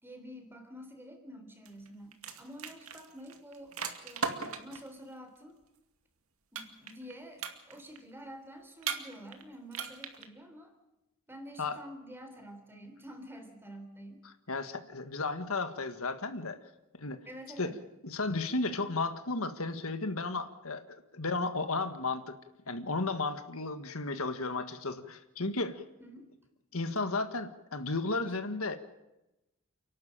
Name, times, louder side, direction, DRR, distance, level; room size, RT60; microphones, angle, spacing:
voice 1, 0.0-3.8 4.0-5.5 6.5-10.7 11.3-14.2 17.3-17.8 26.0-26.3, equal, 10° right, 6 dB, 3.6 m, -48 dB
sound 1, 1.7-1.9 2.1-4.9 6.6-7.1 7.4-8.0 8.8-9.4 9.7-10.2, right 5 dB, 75° right, 2.4 m, -37 dB
voice 2, 14.5-16.6 17.0-17.2 17.6-17.7 18.0-22.4 22.7-25.8 26.7-28.8, left 3 dB, 75° left, 8 dB, 1.7 m, -34 dB
29.5 x 12.0 x 9.0 m, 0.94 s
head